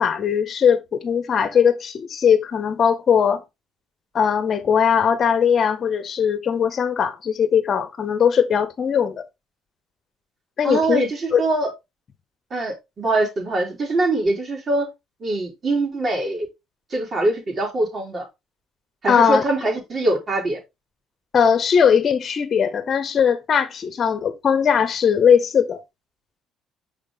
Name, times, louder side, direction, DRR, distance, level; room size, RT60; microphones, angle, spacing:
voice 1, 0.0-3.4 4.1-9.2 10.6-11.0 11.3-11.4 19.1-19.4 21.3-25.8, left 7 dB, 45° left, 1.3 m, -19 dB
voice 2, 10.6-11.7 12.5-14.9 15.2-16.5 16.9-18.2 19.0-20.6, right 2 dB, 40° right, 3.4 m, -23 dB
6.4 x 4.9 x 3.6 m
cardioid pair, 100°, 0 cm